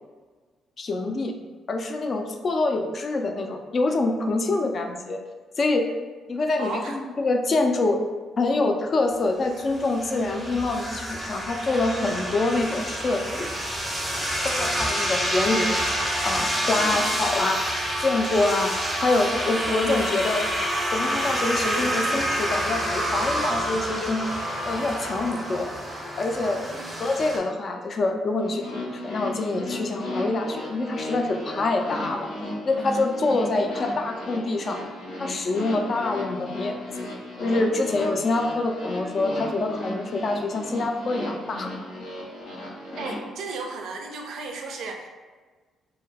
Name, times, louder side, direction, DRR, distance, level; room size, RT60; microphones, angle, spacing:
voice 1, 0.8-1.4 1.7-5.2 5.6-5.9 6.3-8.0 8.4-13.5 14.4-15.8 16.2-17.6 18.0-18.7 19.0-20.4 20.9-24.3 24.6-25.7 26.2-26.6 27.0-28.6 28.9-32.3 32.6-34.8 35.2-37.1 37.4-41.7, left 2 dB, 45° left, 4 dB, 0.3 m, -25 dB
voice 2, 6.6-7.0 16.7-17.2 26.5-27.0 43.0-45.1, right 3 dB, 75° right, 3 dB, 0.4 m, -35 dB
sound 1, 9.5-27.4, equal, 5° right, 0.6 m, -28 dB
sound 2, 28.4-43.1, left 1 dB, 80° left, 0.9 m, -35 dB
2.2 x 2.1 x 3.2 m, 1.4 s
cardioid pair, 90°, 0 cm